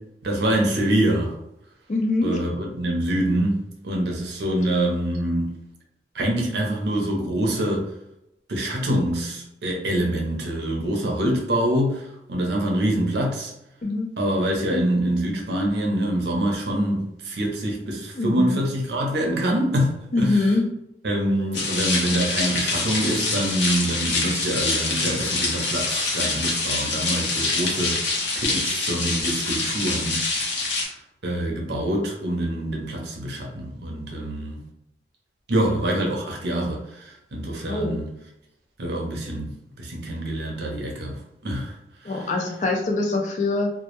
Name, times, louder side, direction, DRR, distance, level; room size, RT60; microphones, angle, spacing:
voice 1, 0.2-1.4 2.2-3.6 3.8-5.6 6.1-7.9 8.5-13.5 14.2-20.4 21.0-28.0 28.4-30.2 30.9-31.0 31.2-34.6 35.5-38.1 38.8-41.7 42.0-42.2, right 1 dB, 70° right, 0.6 m, -25 dB
voice 2, 1.9-2.4 13.8-14.1 18.1-18.6 20.1-20.7 37.7-38.0 42.0-43.7, left 2 dB, 40° left, 0.4 m, -23 dB
sound 1, 21.5-30.8, left 3 dB, 90° left, 0.7 m, -25 dB
2.1 x 2.0 x 2.9 m
head